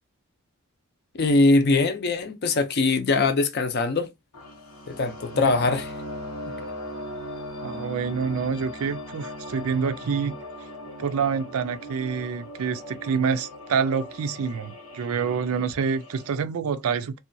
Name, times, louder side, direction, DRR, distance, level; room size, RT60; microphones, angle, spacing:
voice 1, 1.1-4.1 4.9-5.9, left 3 dB, 50° left, 0.5 m, -22 dB
sound 1, 4.3-16.3, left 1 dB, 85° left, 1.0 m, -39 dB
voice 2, 5.3-5.8 7.6-10.3 11.0-17.2, right 6 dB, 75° right, 0.4 m, -27 dB
2.6 x 2.2 x 2.6 m
head